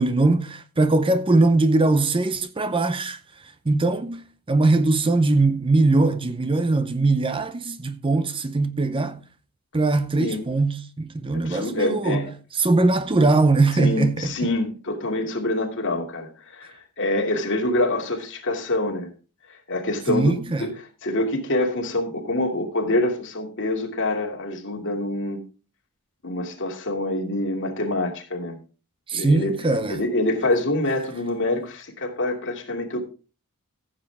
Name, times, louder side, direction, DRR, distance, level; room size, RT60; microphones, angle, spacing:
voice 1, 0.0-9.2 9.7-14.4 20.1-20.7 29.1-30.0, right 2 dB, 25° right, 0.6 m, -21 dB
voice 2, 11.3-12.3 13.7-19.1 19.7-20.7 21.0-25.4 26.2-28.6 29.1-29.5 29.9-33.0, left 2 dB, 55° left, 2.6 m, -26 dB
15.0 x 7.5 x 3.5 m
head